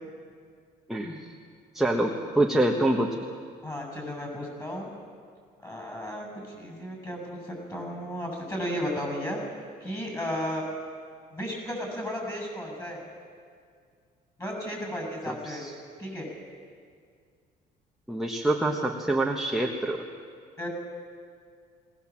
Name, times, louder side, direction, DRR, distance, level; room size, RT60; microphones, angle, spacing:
voice 1, 0.9-1.3 1.7-3.2 15.3-15.7 18.1-20.0, right 1 dB, ahead, 0 dB, 1.3 m, -26 dB
voice 2, 3.6-4.9 5.6-9.4 9.8-10.6 11.3-13.0 14.4-15.7 16.0-16.3 20.6-20.7, equal, 20° left, 1 dB, 7.2 m, -34 dB
20.0 x 19.0 x 7.4 m, 2.2 s
cardioid pair, 110°, 17 cm